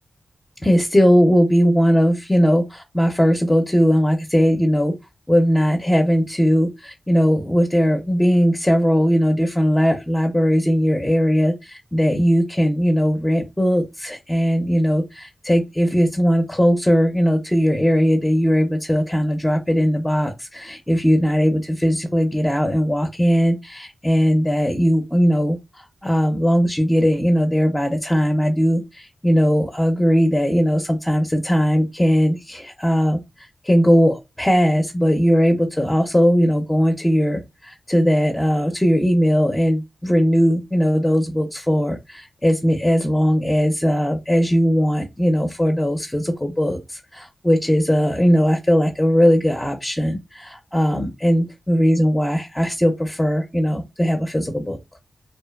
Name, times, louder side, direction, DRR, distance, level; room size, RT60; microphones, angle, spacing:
voice 1, 0.6-4.9 5.3-54.8, equal, 10° left, 0.5 m, -19 dB
2.6 x 2.1 x 2.2 m
cardioid pair, 55°, 0 cm